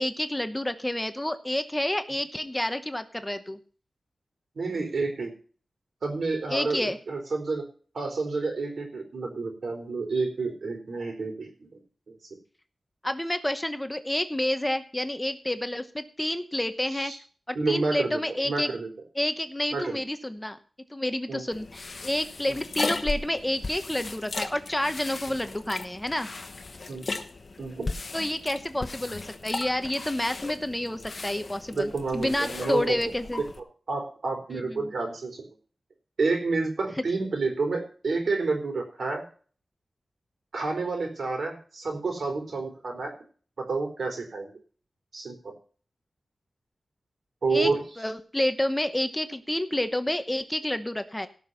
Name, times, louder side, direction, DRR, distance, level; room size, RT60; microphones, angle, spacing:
voice 1, 0.0-3.6 6.5-7.0 13.0-17.1 17.5-18.7 19.1-20.6 20.9-26.3 28.1-33.4 34.5-34.9 47.5-47.7 48.0-51.3, left 1 dB, 10° left, 9 dB, 0.9 m, -29 dB
voice 2, 4.6-5.3 6.0-7.7 7.9-11.8 12.1-12.2 16.9-17.2 17.5-18.9 19.7-20.0 21.3-21.4 25.3-25.4 26.9-27.1 27.6-27.9 31.7-33.4 33.9-35.5 36.2-39.2 40.5-43.1 43.6-44.5 45.1-45.5 47.4-47.8, right 3 dB, 75° right, 4 dB, 4.2 m, -29 dB
sound 1, 21.5-33.6, left 3 dB, 50° left, 1.2 m, -37 dB
17.5 x 6.1 x 5.6 m, 0.42 s
wide cardioid pair, 110°, 0 cm